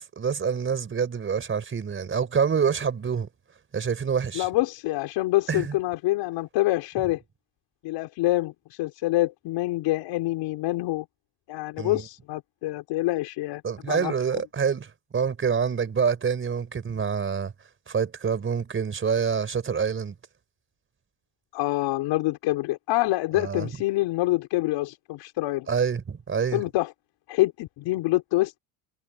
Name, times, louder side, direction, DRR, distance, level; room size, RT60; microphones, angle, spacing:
voice 1, 0.2-3.3 3.7-4.5 5.5-5.8 11.8-12.1 13.6-17.5 17.9-20.1 23.3-23.7 25.7-26.6, right 6 dB, 25° right, 4.3 m, -26 dB
voice 2, 4.3-7.2 7.8-11.1 11.5-14.1 21.5-25.7 26.5-26.9 27.3-28.6, left 18 dB, 60° left, 4.2 m, -26 dB
cardioid pair, 125°, 49 cm